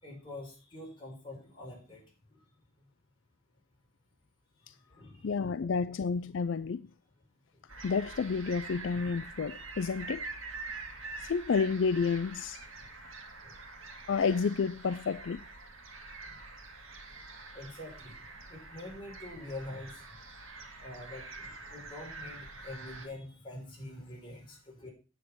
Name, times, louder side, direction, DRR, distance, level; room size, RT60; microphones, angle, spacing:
voice 1, 0.0-2.1 2.3-2.4 4.6-5.4 7.5-7.6 13.4-13.6 17.5-18.2 18.5-20.0 20.8-24.9, left 1 dB, 25° left, 5.4 m, -45 dB
voice 2, 5.2-6.9 7.8-10.2 11.2-12.6 14.1-15.4, left 5 dB, 65° left, 0.4 m, -30 dB
sound 1, 7.7-23.1, right 3 dB, 75° right, 2.2 m, -46 dB
9.4 x 7.8 x 6.0 m
head